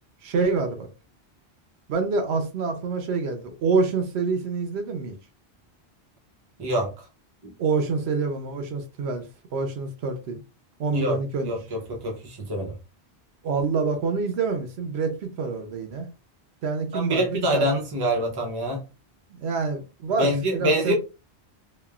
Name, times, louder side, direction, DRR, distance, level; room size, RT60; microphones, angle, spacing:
voice 1, 0.2-0.9 1.9-5.2 7.6-9.2 9.5-10.4 10.8-11.5 13.4-16.1 16.6-17.7 19.3-20.9, right 4 dB, 75° right, 0.8 m, -26 dB
voice 2, 6.6-6.9 7.4-7.5 10.9-11.2 11.4-12.7 16.9-18.8 20.2-20.9, equal, 25° right, 0.6 m, -25 dB
3.1 x 2.1 x 2.3 m
omnidirectional pair, 1.1 m